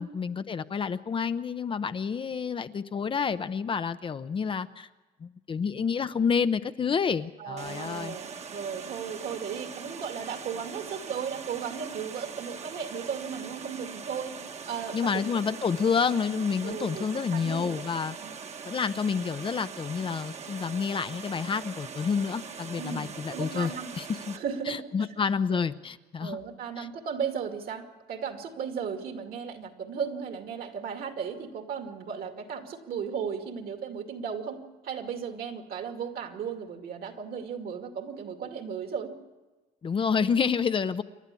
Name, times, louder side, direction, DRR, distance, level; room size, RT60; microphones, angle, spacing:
voice 1, 0.0-4.9 5.2-8.2 14.9-18.1 18.7-24.4 24.7-26.4 26.8-26.9 39.8-41.0, left 6 dB, 30° left, 12 dB, 0.6 m, -29 dB
voice 2, 7.4-14.4 14.7-15.6 16.6-18.3 22.8-24.0 24.3-25.1 26.2-39.1, right 7 dB, 60° right, 5 dB, 2.4 m, -36 dB
Water, 7.6-24.4, right 6 dB, 40° right, 1.3 m, -42 dB
28.0 x 11.5 x 8.4 m, 1.2 s
cardioid pair, 110°, 17 cm